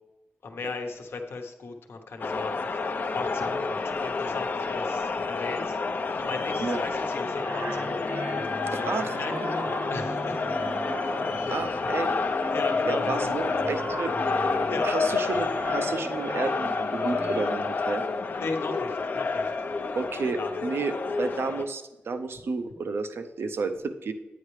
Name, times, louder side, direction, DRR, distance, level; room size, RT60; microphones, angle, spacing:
voice 1, 0.4-5.7 6.1-8.1 8.7-10.5 11.0-11.6 12.5-13.3 14.7-14.9 18.4-19.7 20.3-20.5, left 4 dB, 75° left, 4 dB, 1.0 m, -36 dB
sound 1, 2.2-21.6, left 4 dB, 55° left, 0.6 m, -29 dB
sound 2, 6.9-11.7 12.2-17.5, right 1 dB, 55° right, 1.0 m, -37 dB
voice 2, 8.7-9.2 11.5-12.1 12.8-14.1 14.7-18.0 19.9-24.1, right 4 dB, 75° right, 8 dB, 0.6 m, -31 dB
Thunder, 10.4-14.9, right 1 dB, 35° right, 0.7 m, -48 dB
9.6 x 9.2 x 3.2 m, 1.0 s
wide cardioid pair, 125°, 4 cm